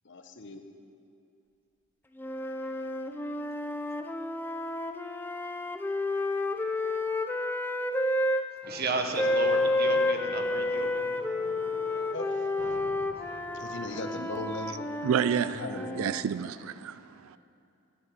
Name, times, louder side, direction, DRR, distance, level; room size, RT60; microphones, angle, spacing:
voice 1, 0.1-0.6 12.1-12.2 13.6-15.1 15.6-16.1, left 2 dB, 50° left, 7 dB, 0.8 m, -38 dB
sound 1, 2.2-8.4 9.1-16.2, left 2 dB, 10° left, 0.3 m, -30 dB
sound 2, 8.6-14.1, right 1 dB, 15° right, 0.9 m, -48 dB
voice 2, 8.7-11.1, right 3 dB, 45° right, 5 dB, 0.9 m, -33 dB
voice 3, 15.0-17.4, right 8 dB, 70° right, 14 dB, 0.3 m, -30 dB
11.5 x 8.8 x 6.3 m, 2.6 s
head